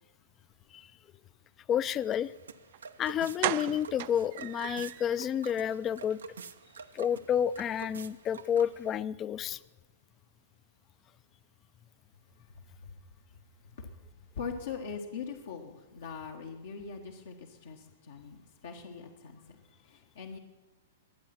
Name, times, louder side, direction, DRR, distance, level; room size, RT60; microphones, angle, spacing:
voice 1, 1.7-2.3 3.0-6.2 6.9-9.6, left 9 dB, 30° left, 19 dB, 0.4 m, -30 dB
sound 1, 1.8-9.0, right 6 dB, 85° right, 0.7 m, -48 dB
sound 2, 2.7-2.8 3.4-5.2 5.5-5.6 6.0-6.2 6.4-6.5, right 17 dB, 50° right, 0.4 m, -35 dB
voice 2, 14.4-19.6 19.9-20.4, left 6 dB, 75° left, 1 dB, 1.4 m, -41 dB
22.0 x 7.7 x 5.9 m, 1.2 s
hypercardioid pair, 120°, 0 cm